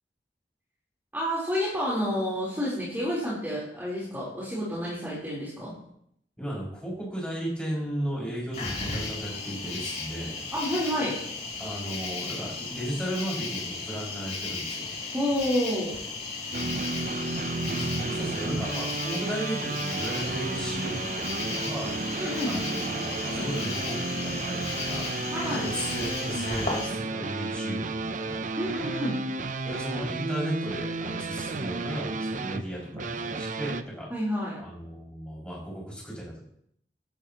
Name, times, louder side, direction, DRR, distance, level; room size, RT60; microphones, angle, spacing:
voice 1, 1.1-5.7 10.5-11.2 15.1-15.9 22.2-22.5 25.3-25.7 28.6-29.2 34.1-34.6, equal, 10° right, -8 dB, 4.0 m, -29 dB
voice 2, 6.4-10.4 11.6-14.9 17.7-21.9 22.4-28.4 29.6-34.1 34.6-36.4, equal, 5° left, -5 dB, 6.3 m, -35 dB
Cricket, 8.5-26.9, left 3 dB, 40° left, 4.2 m, -35 dB
sound 1, 16.5-33.8, right 3 dB, 45° right, 0.6 m, -33 dB
14.5 x 12.5 x 3.1 m, 0.70 s
head